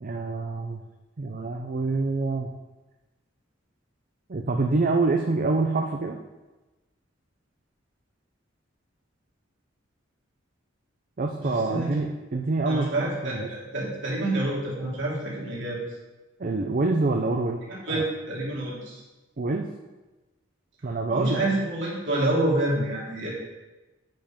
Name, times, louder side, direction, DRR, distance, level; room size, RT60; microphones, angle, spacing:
voice 1, 0.0-0.8 1.2-2.5 4.3-6.2 11.2-13.5 16.4-17.6 17.9-18.0 19.4-19.7 20.8-21.4, right 3 dB, 45° right, 3 dB, 0.6 m, -26 dB
voice 2, 11.4-12.0 12.6-15.8 17.9-19.0 21.1-23.3, right 1 dB, 65° right, -5 dB, 3.2 m, -28 dB
9.0 x 5.5 x 5.2 m, 1.1 s
head